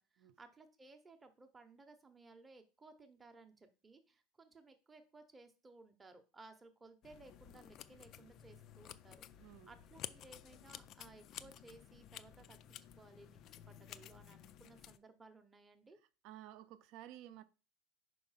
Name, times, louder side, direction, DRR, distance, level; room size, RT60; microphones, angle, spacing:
voice 1, 0.0-16.0, right 3 dB, 15° right, 0.8 m, -60 dB
sound 1, 7.0-15.0, left 11 dB, 35° left, 0.4 m, -53 dB
voice 2, 9.4-9.7 16.2-17.4, right 13 dB, 50° right, 0.6 m, -53 dB
5.2 x 4.6 x 5.6 m
supercardioid pair, 160°, 0 cm